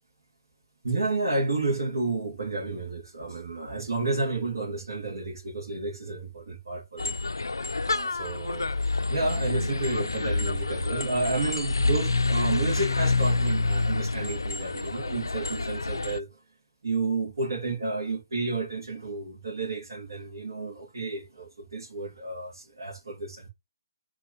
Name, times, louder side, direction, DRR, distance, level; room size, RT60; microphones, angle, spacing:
voice 1, 0.8-7.1 7.8-8.8 9.1-16.3 16.8-23.5, right 3 dB, 70° right, 2.8 m, -31 dB
sound 1, 7.0-16.2, left 3 dB, 80° left, 0.5 m, -27 dB
4.6 x 3.8 x 5.4 m
figure-of-eight pair, 145°, 2 cm